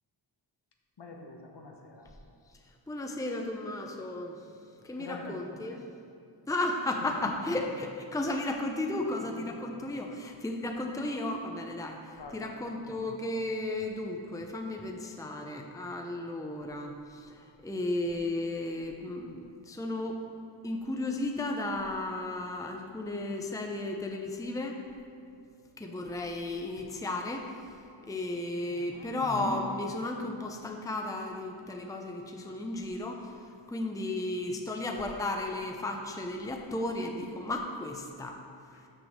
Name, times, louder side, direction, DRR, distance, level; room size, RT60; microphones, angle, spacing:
voice 1, 1.0-2.1 5.0-5.6 7.0-7.1 12.1-12.5 28.7-29.1 38.7-38.8, left 3 dB, 65° left, 2 dB, 1.1 m, -46 dB
voice 2, 2.9-4.4 4.8-5.8 6.5-20.2 20.6-24.8 25.8-27.5 28.0-38.4, left 2 dB, 10° left, 2 dB, 0.6 m, -34 dB
6.9 x 6.3 x 6.3 m, 2.5 s
wide cardioid pair, 105°, 46 cm